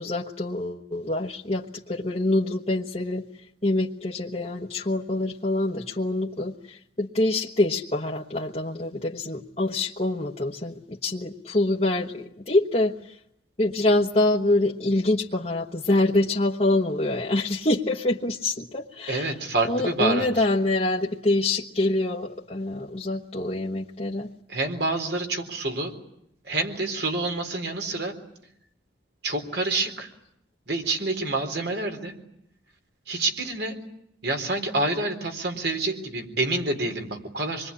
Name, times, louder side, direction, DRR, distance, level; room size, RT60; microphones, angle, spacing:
voice 1, 0.0-3.2 3.6-13.2 13.6-19.3 19.6-24.3, left 2 dB, 35° left, -3 dB, 1.3 m, -25 dB
voice 2, 19.1-20.3 24.5-25.9 26.4-28.1 29.2-30.1 30.7-32.1 33.1-33.8 34.2-37.7, right 2 dB, 65° right, 4 dB, 4.0 m, -27 dB
26.5 x 22.0 x 9.9 m, 0.76 s
head